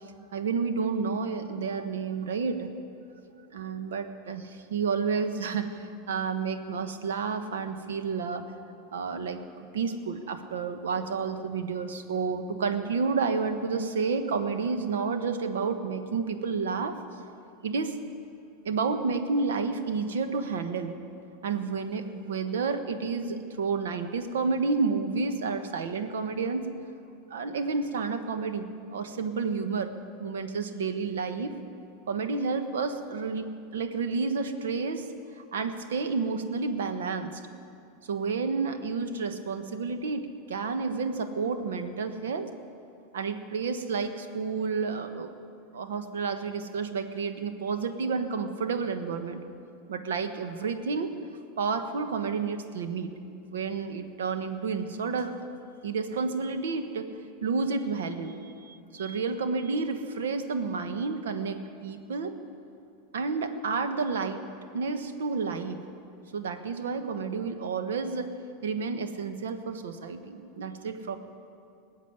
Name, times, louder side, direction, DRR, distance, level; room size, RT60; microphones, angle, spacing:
voice 1, 0.3-2.7 3.5-8.4 8.9-9.4 9.7-17.2 17.6-18.0 18.6-20.9 21.4-26.7 27.3-29.9 30.2-31.5 32.1-35.1 35.4-37.4 38.0-42.5 43.1-45.3 45.7-49.4 49.9-51.1 51.6-53.1 53.5-55.5 55.8-57.1 57.4-62.3 63.1-64.4 64.7-65.8 66.3-68.3 68.6-71.2, right 4 dB, 85° right, 8 dB, 1.2 m, -30 dB
19.5 x 7.3 x 9.6 m, 2.5 s
hypercardioid pair, 110°, 0 cm